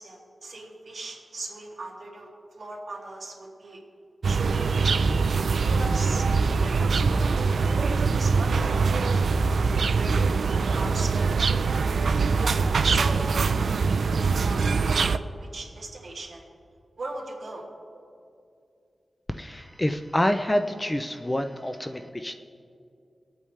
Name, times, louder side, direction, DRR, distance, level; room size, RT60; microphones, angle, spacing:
voice 1, 0.0-2.3 2.6-3.8 4.3-4.8 5.7-6.3 6.8-9.4 9.6-11.5 12.8-15.2 15.5-16.4 17.0-17.7, right 2 dB, 60° right, -3 dB, 2.5 m, -39 dB
sound 1, 4.2-15.2, right 4 dB, 80° right, 0.4 m, -23 dB
voice 2, 19.3-22.4, left 1 dB, 15° left, 7 dB, 0.5 m, -27 dB
25.0 x 8.8 x 3.2 m, 2.4 s
wide cardioid pair, 120°, 0 cm